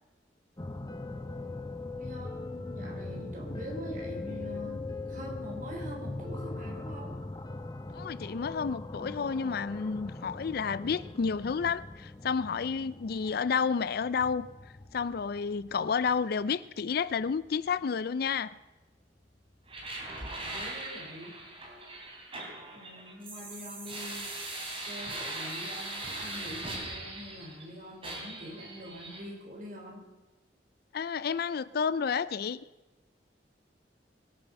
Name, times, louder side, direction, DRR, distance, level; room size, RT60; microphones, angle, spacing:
sound 1, 0.6-17.8 19.5-19.6 19.9-20.0, left 2 dB, 20° left, 0.8 m, -41 dB
voice 1, 1.9-7.2 20.3-21.4 22.7-24.4 24.9-30.1, equal, 50° right, 0 dB, 4.1 m, -44 dB
voice 2, 7.9-14.5 14.9-18.5 30.9-32.6, left 6 dB, 60° left, 17 dB, 0.4 m, -30 dB
sound 2, 19.7-27.7 28.0-29.2, right 2 dB, 30° right, 3.3 m, -40 dB
22.0 x 9.1 x 5.3 m, 1.1 s
head